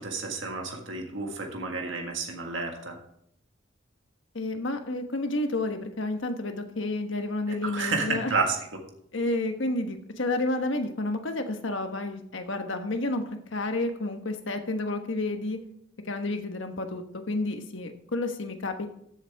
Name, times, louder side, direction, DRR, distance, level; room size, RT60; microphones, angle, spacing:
voice 1, 0.0-3.0 7.5-8.6, right 4 dB, 85° right, 2 dB, 1.8 m, -30 dB
voice 2, 4.3-8.3 9.1-13.2 13.5-15.6 16.1-18.9, left 2 dB, 90° left, 6 dB, 1.3 m, -30 dB
14.5 x 7.5 x 3.5 m, 0.70 s
head